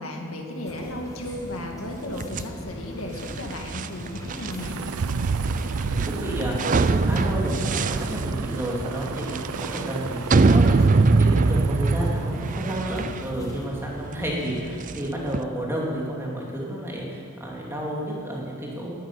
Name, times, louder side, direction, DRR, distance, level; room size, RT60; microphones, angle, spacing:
voice 1, 0.0-4.8, left 1 dB, 70° left, 2 dB, 1.9 m, -34 dB
sound 1, 0.7-13.7, equal, 15° left, 1.4 m, -41 dB
sound 2, 2.2-15.4, right 3 dB, 35° right, 0.4 m, -24 dB
sound 3, 4.6-15.0, right 4 dB, 85° right, 0.5 m, -33 dB
voice 2, 5.8-19.0, equal, 10° right, -4 dB, 2.6 m, -31 dB
11.5 x 10.0 x 9.8 m, 2.3 s
head